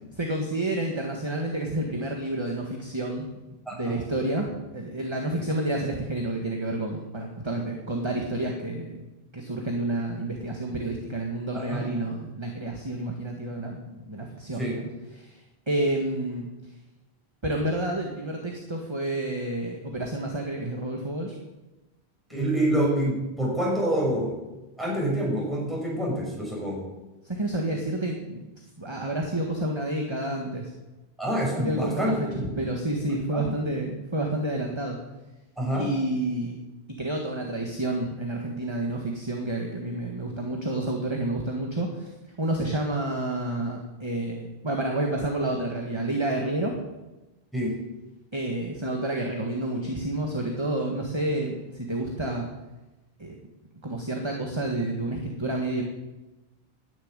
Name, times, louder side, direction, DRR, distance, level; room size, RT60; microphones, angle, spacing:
voice 1, 0.1-3.3 3.7-16.7 17.4-21.4 27.2-28.5 28.8-30.7 31.5-35.0 35.7-36.6 37.0-46.8 48.3-52.5 53.2-53.4 53.8-55.8, right 1 dB, 25° right, 1 dB, 1.7 m, -29 dB
voice 2, 3.7-4.0 5.3-5.4 11.5-11.8 14.6-14.8 22.3-24.3 24.8-26.8 31.2-32.6 33.3-33.5 35.6-35.9 47.5-47.8, right 1 dB, ahead, -5 dB, 6.6 m, -27 dB
11.0 x 10.0 x 9.7 m, 1.0 s
omnidirectional pair, 1.0 m